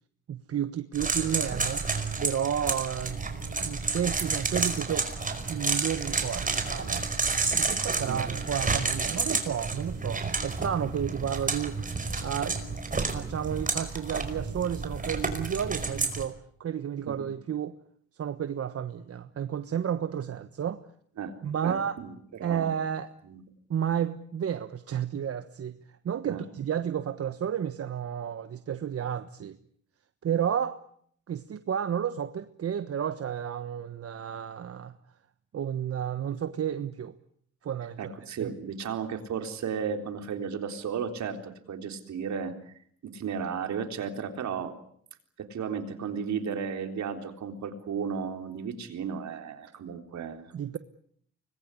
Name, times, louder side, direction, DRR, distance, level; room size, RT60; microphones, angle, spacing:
voice 1, 0.3-1.9 2.2-3.2 3.6-5.1 5.5-7.1 7.5-11.8 12.2-12.6 13.1-17.8 18.2-20.8 21.4-21.9 22.4-23.1 23.7-25.8 26.0-29.6 30.2-30.8 31.3-34.9 35.5-37.1 37.6-38.1 38.4-38.5 50.5-50.8, right 9 dB, 50° right, 11 dB, 1.3 m, -31 dB
sound 1, 0.9-16.2, right 3 dB, 25° right, 5.0 m, -30 dB
voice 2, 21.6-22.7 23.2-23.4 26.3-26.4 38.0-42.7 43.0-44.7 45.4-50.5, right 6 dB, 65° right, 6 dB, 4.0 m, -34 dB
25.0 x 20.5 x 9.9 m, 0.66 s
cardioid pair, 90°, 30 cm